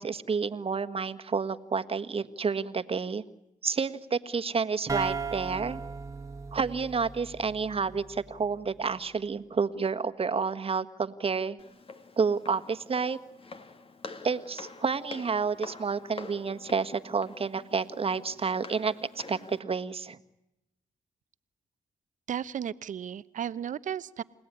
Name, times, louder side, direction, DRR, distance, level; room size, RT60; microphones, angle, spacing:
voice 1, 0.0-3.2 3.6-5.8 6.5-11.6 12.2-13.2 14.2-20.2, right 5 dB, 45° right, 9 dB, 1.5 m, -30 dB
sound 1, 4.9-8.5, right 4 dB, 20° right, 1.7 m, -37 dB
Walk footsteps, 11.6-19.6, left 3 dB, 40° left, 2.2 m, -47 dB
voice 2, 22.3-24.2, right 9 dB, 65° right, 15 dB, 0.9 m, -34 dB
29.5 x 17.0 x 9.8 m, 0.90 s
cardioid pair, 65°, 14 cm